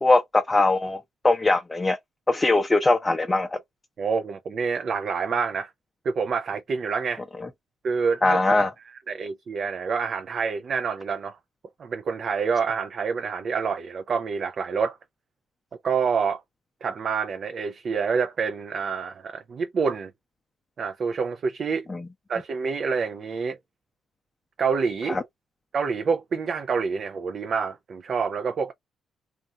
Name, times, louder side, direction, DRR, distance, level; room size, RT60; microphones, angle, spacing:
voice 1, 0.0-2.0 2.3-3.6 8.2-8.7 21.9-22.1 25.1-25.2, left 2 dB, 20° left, 0.6 m, -21 dB
voice 2, 4.0-5.7 6.0-7.2 7.8-8.4 9.1-11.4 11.8-15.0 15.8-16.4 16.8-20.1 20.8-21.9 22.3-23.6 24.6-25.2 25.7-28.7, right 5 dB, 55° right, 0.4 m, -27 dB
2.5 x 2.3 x 2.7 m
supercardioid pair, 65°, 0 cm